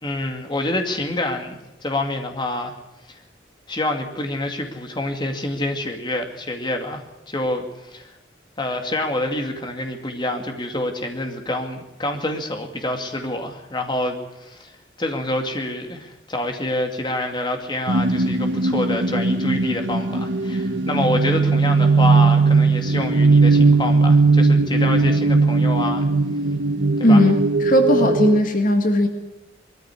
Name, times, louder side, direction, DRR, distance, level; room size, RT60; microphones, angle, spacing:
voice 1, 0.0-2.7 3.1-3.2 3.7-8.1 8.6-14.7 15.0-26.1 27.0-27.2, left 1 dB, 25° left, 4 dB, 2.3 m, -27 dB
sound 1, 17.9-28.4, right 3 dB, 85° right, 1.1 m, -18 dB
voice 2, 27.0-29.1, left 1 dB, 50° left, 5 dB, 2.0 m, -17 dB
21.0 x 14.5 x 9.8 m, 1.0 s
head